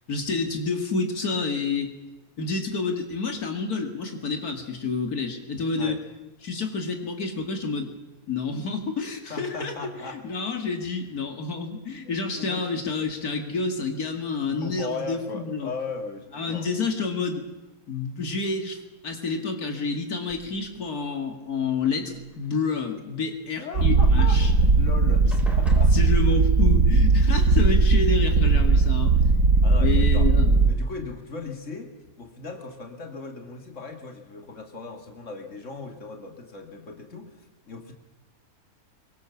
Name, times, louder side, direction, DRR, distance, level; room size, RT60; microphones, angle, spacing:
voice 1, 0.1-1.9 2.4-6.0 6.4-7.9 8.3-9.7 10.0-15.7 16.3-17.4 17.9-24.5 25.9-29.1 29.8-30.6, left 4 dB, 90° left, 4 dB, 2.7 m, -29 dB
voice 2, 9.3-10.2 12.0-12.7 14.4-16.7 23.6-26.0 29.6-30.3 30.6-37.9, left 4 dB, 55° left, 4 dB, 2.9 m, -37 dB
sound 1, 20.3-20.9 21.7-22.6 24.4-24.5 24.7-25.0 25.3-26.7 27.9-28.0 28.5-28.9, left 1 dB, ahead, 4.4 m, -42 dB
Purr, 23.7-30.7, right 3 dB, 65° right, 1.9 m, -18 dB
23.5 x 23.5 x 7.3 m, 1.1 s
omnidirectional pair, 1.6 m